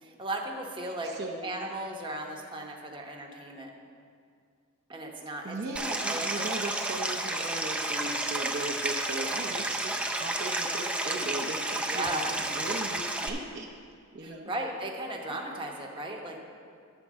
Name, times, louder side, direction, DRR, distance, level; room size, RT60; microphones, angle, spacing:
voice 1, 0.0-1.2 1.4-3.7 4.9-6.8 11.9-12.2 14.2-16.4, right 1 dB, 20° right, 0 dB, 0.9 m, -36 dB
voice 2, 1.0-1.4 5.4-12.2 12.5-13.7 14.1-14.5, right 2 dB, 50° right, 0 dB, 0.7 m, -37 dB
Stream, 5.8-13.3, right 1 dB, 5° right, 0.5 m, -31 dB
10.0 x 4.5 x 7.3 m, 2.2 s
head